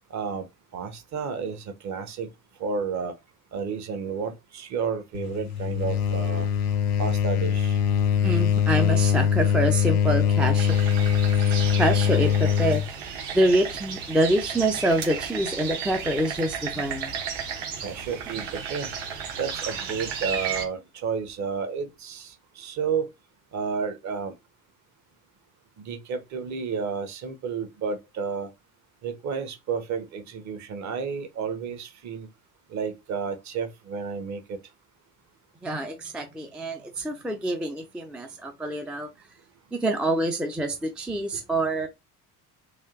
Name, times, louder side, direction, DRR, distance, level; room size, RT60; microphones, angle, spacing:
voice 1, 0.1-2.3 2.6-3.1 3.5-6.5 7.0-7.8 17.8-18.9 19.4-23.1 23.5-24.3 25.8-28.5 29.0-32.3 32.7-34.6 41.3-41.4, right 5 dB, 35° right, 0.9 m, -31 dB
sound 1, 5.1-12.9, left 8 dB, 75° left, 0.6 m, -22 dB
voice 2, 8.2-10.8 11.8-12.8 13.3-17.1 35.6-39.1 39.7-41.9, right 1 dB, 5° right, 0.4 m, -26 dB
sound 2, 10.6-20.7, right 7 dB, 55° right, 1.2 m, -34 dB
3.4 x 2.4 x 2.4 m
figure-of-eight pair, 55°, 46 cm